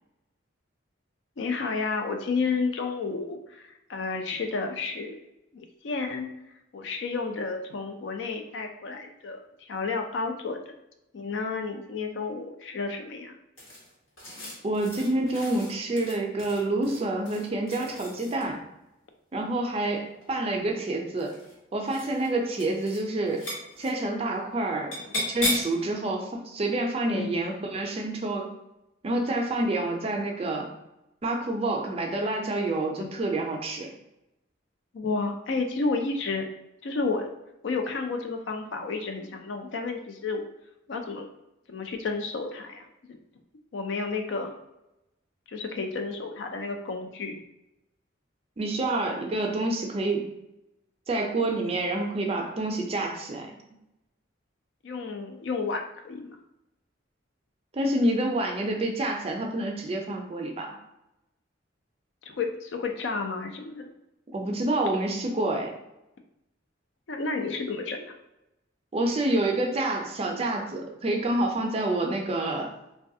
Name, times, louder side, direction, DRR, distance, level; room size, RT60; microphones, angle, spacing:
voice 1, 1.4-5.2 5.5-6.3 6.7-10.6 11.1-13.4 25.0-25.1 27.1-27.3 33.0-33.1 34.9-36.5 36.8-37.3 37.6-40.4 40.9-41.3 41.7-43.2 43.7-44.5 45.5-47.4 54.8-56.4 62.2-63.9 67.1-68.1, left 4 dB, 65° left, 5 dB, 0.4 m, -31 dB
sound 1, 13.6-18.6 19.8-20.5 21.1-21.6 21.8-22.3 22.5-23.0 23.3-23.9 24.9-25.8, left 1 dB, 85° left, 1.3 m, -35 dB
voice 2, 14.6-18.6 19.3-21.3 21.7-23.4 23.8-24.9 25.3-28.5 29.0-30.7 31.2-33.9 48.6-50.2 51.1-53.5 57.7-60.8 64.3-65.7 68.9-72.7, right 2 dB, 30° right, 2 dB, 0.4 m, -28 dB
3.2 x 2.3 x 2.6 m, 0.90 s
head